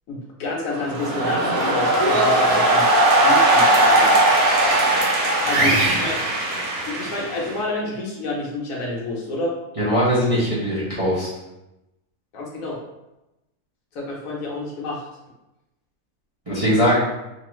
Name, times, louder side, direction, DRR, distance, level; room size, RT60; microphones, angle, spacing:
voice 1, 0.1-4.1 5.4-6.1 6.9-9.5 12.3-12.8 13.9-15.1, left 2 dB, 65° left, -3 dB, 1.0 m, -29 dB
sound 1, 0.7-7.6, right 1 dB, 70° right, 1.2 m, -18 dB
voice 2, 5.5-6.0 9.8-11.3 16.5-17.0, equal, 35° right, -10 dB, 0.5 m, -21 dB
3.0 x 2.4 x 3.0 m, 0.96 s
omnidirectional pair, 1.7 m